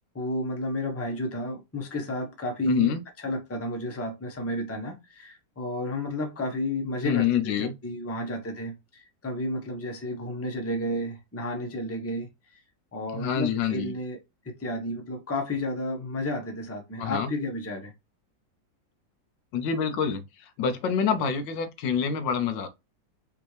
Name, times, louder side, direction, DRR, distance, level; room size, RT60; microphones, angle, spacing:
voice 1, 0.1-12.3 12.9-14.2 14.4-17.9, left 1 dB, 10° left, 0.8 m, -32 dB
voice 2, 2.6-3.0 7.0-7.7 13.1-13.9 17.0-17.3 19.5-22.7, left 7 dB, 80° left, 1.4 m, -26 dB
5.3 x 2.9 x 3.2 m
omnidirectional pair, 2.0 m